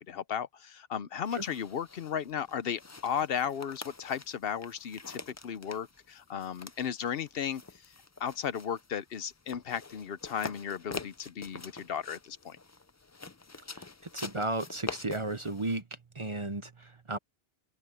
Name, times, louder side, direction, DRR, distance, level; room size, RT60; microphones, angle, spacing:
voice 1, 0.0-7.6 8.2-12.6, left 8 dB, 70° left, 0.9 m, -35 dB
sound 1, 1.2-15.8, left 3 dB, 25° left, 0.4 m, -46 dB
voice 2, 14.1-15.8 16.1-17.2, right 2 dB, 30° right, 0.8 m, -34 dB
open air
omnidirectional pair, 1.1 m